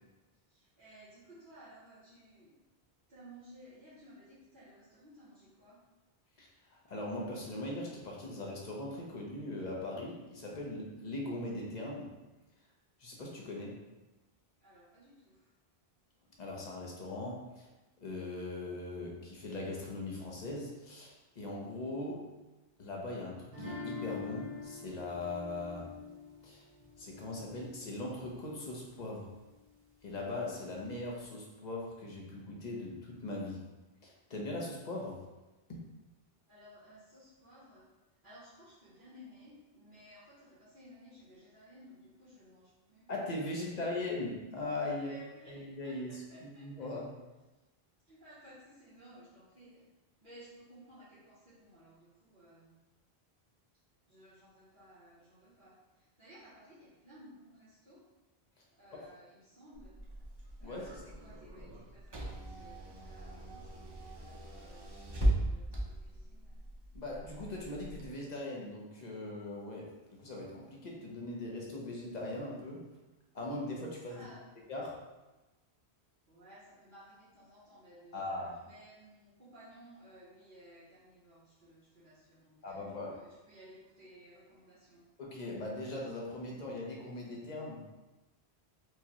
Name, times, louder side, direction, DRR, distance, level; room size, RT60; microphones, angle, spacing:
voice 1, 0.5-2.6 3.1-5.8 14.6-15.5 36.5-37.9 38.2-43.1 43.7-44.1 44.9-46.7 48.0-49.9 50.2-52.7 54.1-58.1 58.8-60.0 60.6-66.6 74.1-74.6 76.3-85.0, equal, 55° right, -11 dB, 1.1 m, -57 dB
voice 2, 6.4-12.1 13.0-13.8 16.4-17.7 18.0-22.2 22.8-25.9 26.4-26.6 27.0-29.3 30.0-33.6 34.0-35.2 35.7-35.8 43.1-45.2 45.5-46.2 46.6-47.1 60.6-60.9 66.9-72.9 73.3-74.3 74.7-75.0 78.1-78.5 82.6-83.1 85.2-87.8, left 2 dB, 45° left, -2 dB, 0.8 m, -40 dB
sound 1, 23.5-28.5, left 5 dB, 75° right, 1.2 m, -45 dB
Car / Engine, 59.7-68.1, right 1 dB, 30° right, 0.5 m, -38 dB
4.6 x 2.1 x 2.9 m, 1.1 s
omnidirectional pair, 1.0 m